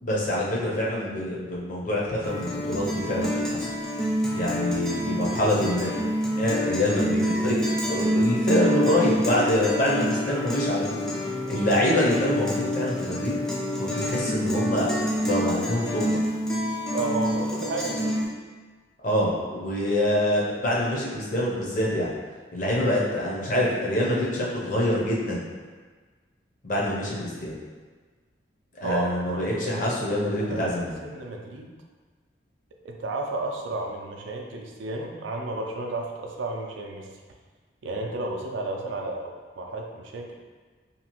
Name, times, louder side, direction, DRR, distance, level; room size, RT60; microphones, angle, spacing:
voice 1, 0.0-3.7 4.3-5.9 6.4-11.0 11.5-13.4 13.8-14.9 15.2-16.2 19.0-22.1 22.5-25.4 26.6-27.6 28.8-30.9, left 1 dB, 45° left, -5 dB, 0.6 m, -25 dB
Guitar, 2.2-18.2, equal, 5° left, 0.4 m, -27 dB
voice 2, 16.9-18.0 26.7-26.9 28.8-29.9 30.4-30.6 31.0-31.7 32.8-37.1 37.8-40.4, right 2 dB, 90° right, 1 dB, 0.4 m, -32 dB
2.8 x 2.3 x 2.9 m, 1.4 s
head